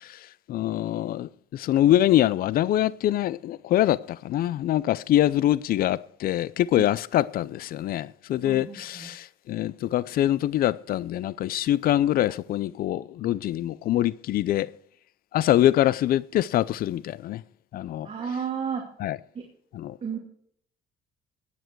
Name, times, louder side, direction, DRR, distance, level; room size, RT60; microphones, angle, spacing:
voice 1, 0.5-14.7 15.3-17.4 17.7-18.1 19.0-19.2 19.7-20.0, left 13 dB, 60° left, 0.5 m, -24 dB
voice 2, 8.4-9.1 18.0-18.9 19.3-19.5 20.0-20.2, right 6 dB, 40° right, 2.5 m, -32 dB
17.0 x 9.1 x 4.6 m
cardioid pair, 110°, 17 cm